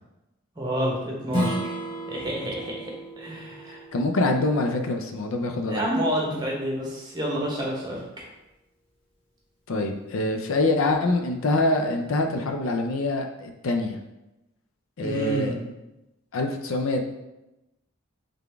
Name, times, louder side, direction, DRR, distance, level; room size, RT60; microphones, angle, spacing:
voice 1, 0.6-1.7 2.1-3.8 5.7-8.0 15.0-15.6, equal, 20° right, -3 dB, 0.9 m, -29 dB
Strum, 1.3-6.5, equal, 25° left, 1.1 m, -34 dB
voice 2, 3.9-5.8 9.7-14.0 15.0-15.5 16.3-17.0, left 2 dB, 80° left, 4 dB, 0.5 m, -25 dB
3.8 x 3.5 x 3.4 m, 0.95 s
head